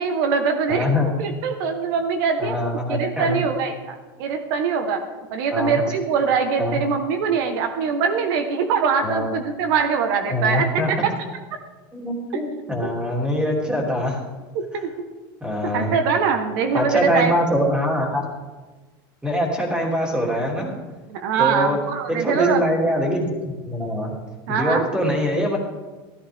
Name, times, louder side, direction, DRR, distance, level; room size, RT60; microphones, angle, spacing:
voice 1, 0.0-0.9 1.2-2.6 2.9-5.0 5.3-11.1 12.8-12.9 14.7-14.9 15.7-17.3 21.1-22.7 24.5-24.8, right 6 dB, 70° right, 6 dB, 1.2 m, -22 dB
voice 2, 0.7-1.1 2.4-3.4 5.5-5.8 6.6-6.8 9.0-9.3 10.3-10.9 11.9-14.2 15.4-15.9 16.7-18.2 19.2-20.7 21.4-21.8 22.1-24.2 24.5-25.6, equal, 5° right, -2 dB, 2.8 m, -23 dB
14.0 x 13.5 x 3.6 m, 1.3 s
supercardioid pair, 135°, 12 cm